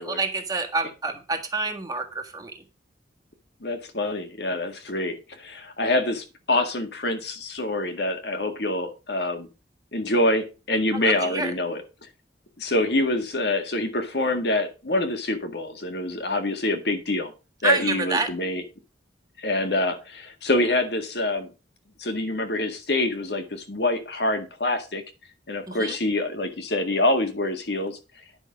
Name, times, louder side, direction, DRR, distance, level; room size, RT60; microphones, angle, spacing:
voice 1, 0.0-2.5 11.0-11.5 17.6-18.3 25.7-26.0, right 3 dB, 20° right, 2 dB, 1.6 m, -27 dB
voice 2, 3.6-9.5 9.9-11.8 12.6-17.3 17.6-18.6 19.4-21.5 22.0-25.0 25.5-28.0, left 2 dB, 65° left, 6 dB, 1.8 m, -26 dB
10.0 x 6.4 x 5.0 m, 0.30 s
head